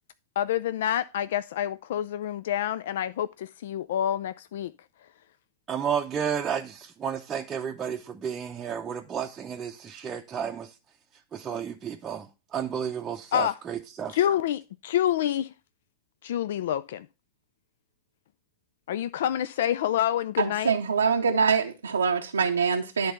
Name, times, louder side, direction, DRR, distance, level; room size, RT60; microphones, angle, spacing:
voice 1, 0.4-4.7 13.3-13.6 14.1-15.5 16.2-17.1 18.9-20.7, left 11 dB, 65° left, 0.3 m, -27 dB
voice 2, 5.7-10.7 11.3-12.3 12.5-14.2, right 8 dB, 25° right, 0.6 m, -32 dB
voice 3, 20.4-23.1, right 5 dB, 85° right, 0.6 m, -24 dB
10.5 x 3.9 x 5.2 m
hypercardioid pair, 105°, 0 cm